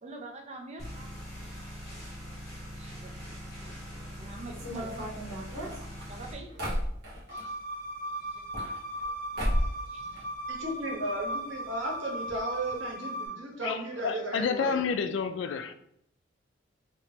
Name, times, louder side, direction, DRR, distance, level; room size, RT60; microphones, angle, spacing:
voice 1, 0.0-1.1 1.5-1.9 2.8-3.8 4.1-5.1 5.5-6.8 7.3-7.8 8.2-8.8 9.6-10.4, right 2 dB, 35° right, 0.5 m, -47 dB
sound 1, 0.8-6.3, equal, 20° left, 1.4 m, -42 dB
sound 2, 4.5-7.5 8.3-9.1 9.4-9.8 10.1-10.9 11.2-11.3 11.5-11.6 12.3-12.4 12.7-12.9, equal, 55° right, 1.1 m, -33 dB
sound 3, 7.3-13.3, right 1 dB, 45° left, 1.0 m, -37 dB
voice 2, 10.5-14.8, right 1 dB, 90° right, 1.1 m, -35 dB
voice 3, 13.6-15.7, left 5 dB, 70° left, 0.3 m, -30 dB
3.4 x 2.8 x 2.9 m
head